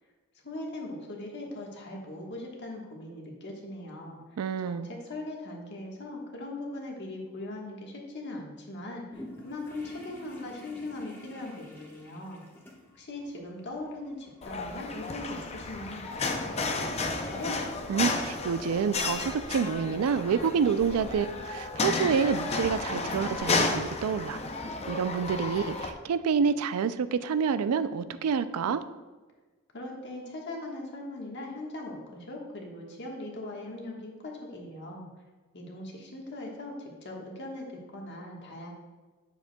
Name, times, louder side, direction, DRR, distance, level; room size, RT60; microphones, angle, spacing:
voice 1, 0.4-4.2 4.6-12.4 12.9-17.6 29.7-35.1 35.5-38.7, left 2 dB, 50° left, -1 dB, 1.4 m, -40 dB
voice 2, 4.4-4.9 17.9-24.4 24.9-28.8, right 6 dB, 85° right, 13 dB, 0.4 m, -28 dB
sound 1, 9.1-17.1, left 1 dB, 10° left, 1.2 m, -51 dB
sound 2, 14.4-25.9, left 3 dB, 30° left, 0.5 m, -32 dB
9.1 x 7.1 x 2.2 m, 1.3 s
head